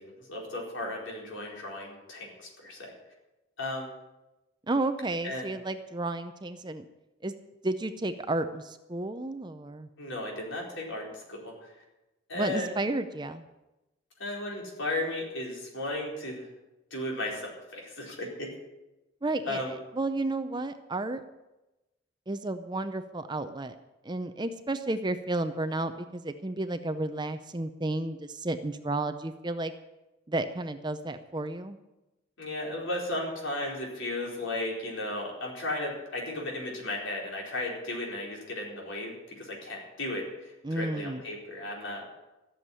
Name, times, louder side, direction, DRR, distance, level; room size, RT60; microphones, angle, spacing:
voice 1, 0.0-2.9 3.6-3.9 5.2-5.5 10.0-11.7 12.3-12.8 14.2-16.5 16.9-18.5 19.5-19.7 32.4-42.1, left 1 dB, 65° left, -1 dB, 4.4 m, -35 dB
voice 2, 4.7-6.9 7.2-7.3 7.6-9.9 12.3-13.4 19.2-21.2 22.3-23.7 24.0-29.7 30.3-31.8 40.6-41.2, right 2 dB, 20° right, 10 dB, 0.6 m, -32 dB
14.0 x 7.3 x 9.8 m, 1.0 s
head